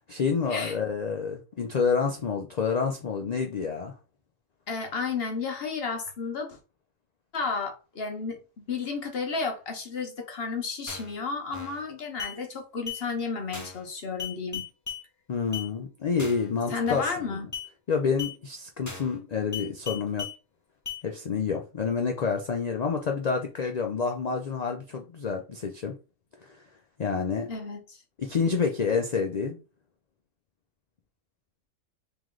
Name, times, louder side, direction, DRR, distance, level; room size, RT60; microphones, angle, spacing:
voice 1, 0.1-3.9 15.3-17.4 17.9-20.3 21.0-26.0 26.4-26.6 27.0-27.5 28.2-29.6, left 5 dB, 90° left, 0.3 m, -28 dB
voice 2, 4.7-6.6 7.3-14.6 16.7-17.5 27.5-28.0, left 4 dB, 55° left, 0.9 m, -32 dB
sound 1, 10.9-11.2 11.5-11.8 12.2-12.4 12.9-13.0 13.5-13.8 14.2-15.0 15.5-15.7 16.2-16.5 16.9-17.2 17.5-17.7 18.2-18.4 18.9-19.2 19.5-20.4 20.9-21.0, left 7 dB, 20° left, 0.6 m, -37 dB
3.1 x 2.9 x 3.7 m
omnidirectional pair, 1.4 m